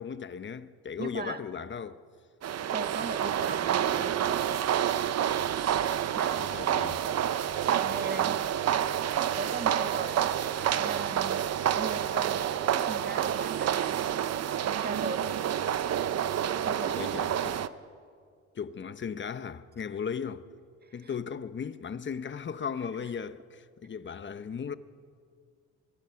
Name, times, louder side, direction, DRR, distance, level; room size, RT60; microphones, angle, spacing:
voice 1, 0.0-2.0 6.4-7.1 16.9-17.6 18.5-20.4 20.9-24.8, left 6 dB, 40° left, 1.0 m, -37 dB
voice 2, 1.0-1.4 2.7-4.2 6.1-6.4 7.7-8.4 9.3-11.4 11.7-14.3 14.8-15.2 16.6-17.2 20.8-21.1, right 4 dB, 30° right, 1.7 m, -38 dB
sound 1, 2.4-17.7, right 10 dB, 55° right, 0.8 m, -28 dB
25.0 x 22.5 x 5.9 m
cardioid pair, 90°, 30 cm